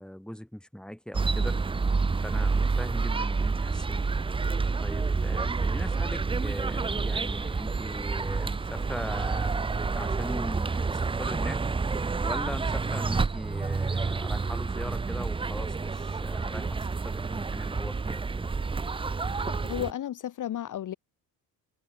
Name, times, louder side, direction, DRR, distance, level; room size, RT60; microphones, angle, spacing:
voice 1, 0.0-1.6 2.2-4.1 4.8-9.5 9.9-11.7 12.2-18.5, equal, ahead, 4.5 m, -40 dB
sound 1, 1.1-19.9, right 4 dB, 15° right, 0.5 m, -29 dB
voice 2, 19.6-20.9, left 11 dB, 50° left, 1.2 m, -33 dB
cardioid pair, 100°, 40 cm